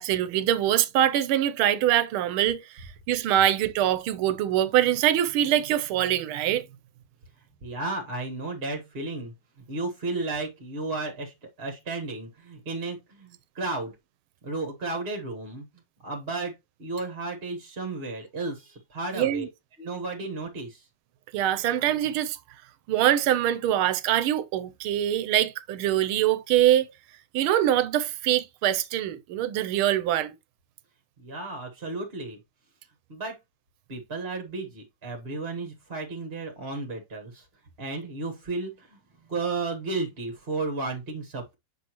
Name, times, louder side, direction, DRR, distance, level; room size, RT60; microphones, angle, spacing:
voice 1, 0.0-6.7 19.1-19.5 21.3-22.4 22.9-26.9 27.3-30.3, right 12 dB, 80° right, 1.6 m, -24 dB
voice 2, 7.6-9.3 9.7-13.9 14.4-15.6 16.0-16.5 16.8-19.5 19.8-20.9 31.2-32.4 33.1-33.4 33.9-37.4 37.8-39.0 39.3-41.6, right 3 dB, 35° right, 1.3 m, -33 dB
7.9 x 5.9 x 3.0 m
omnidirectional pair, 2.3 m